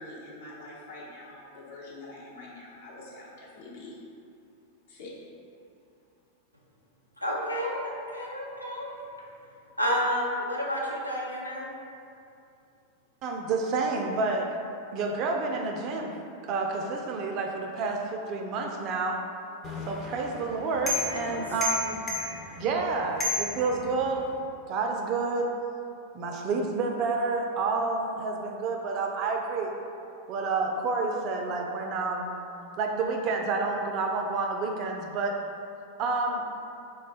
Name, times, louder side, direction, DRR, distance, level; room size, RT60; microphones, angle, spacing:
voice 1, 0.0-3.9 4.9-5.1, left 2 dB, 55° left, -6 dB, 0.9 m, -45 dB
voice 2, 7.2-8.9 9.8-11.7 21.0-21.4, equal, 90° left, -4 dB, 0.4 m, -30 dB
voice 3, 13.2-14.5 14.9-16.1 16.5-19.2 19.8-24.2 24.7-25.5 26.1-29.7 30.3-32.4 32.8-35.4 36.0-36.4, right 3 dB, 40° right, 2 dB, 0.3 m, -29 dB
sound 1, 19.6-24.3, left 3 dB, 25° left, 0.6 m, -34 dB
3.2 x 2.1 x 4.1 m, 2.6 s
figure-of-eight pair, 90°, 0 cm